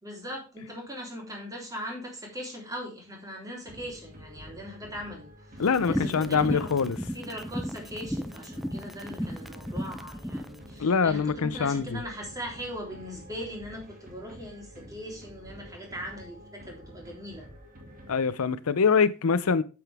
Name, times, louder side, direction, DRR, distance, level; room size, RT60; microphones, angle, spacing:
voice 1, 0.0-6.7 7.1-17.5, equal, 15° right, 3.4 m, -40 dB
sound 1, 3.7-18.7, equal, 40° right, 2.2 m, -49 dB
voice 2, 5.6-7.0 10.8-12.0 18.1-19.6, left 5 dB, 70° left, 0.6 m, -24 dB
sound 2, 5.7-10.5, equal, ahead, 0.6 m, -34 dB
9.1 x 7.8 x 3.5 m
head